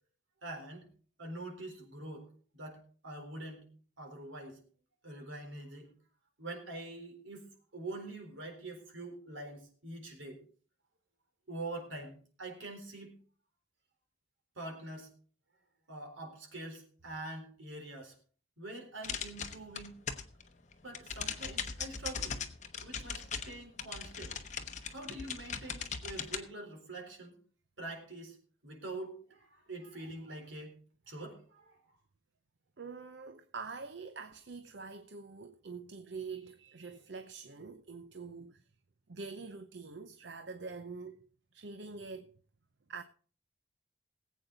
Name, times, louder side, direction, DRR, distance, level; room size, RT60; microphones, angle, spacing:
voice 1, 0.4-0.9 1.2-3.7 4.0-4.6 5.0-5.9 6.4-10.4 11.5-13.2 14.6-15.1 15.9-18.1 18.6-19.9 20.8-22.4 22.8-24.3 24.9-27.4 27.8-28.4 28.6-30.8 31.1-31.8, right 2 dB, 80° right, 4.0 m, -45 dB
sound 1, 19.0-20.4 20.7-26.4, left 6 dB, 40° left, 1.0 m, -39 dB
voice 2, 32.8-38.6 39.1-41.2 41.5-42.3 42.9-43.0, right 4 dB, 65° right, 0.7 m, -45 dB
19.0 x 8.4 x 4.0 m
head